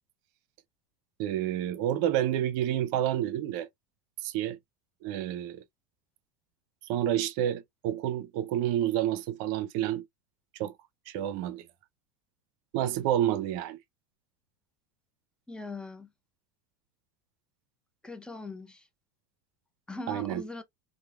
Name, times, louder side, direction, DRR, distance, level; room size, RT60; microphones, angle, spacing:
voice 1, 1.2-3.7 4.2-4.6 5.0-5.6 6.9-10.0 10.6-10.7 11.1-11.7 12.7-13.8 20.1-20.4, right 11 dB, 65° right, 0.5 m, -29 dB
voice 2, 15.5-16.1 18.0-18.8 19.9-20.6, left 3 dB, 10° left, 0.5 m, -40 dB
3.0 x 2.0 x 2.2 m
supercardioid pair, 105°, 11 cm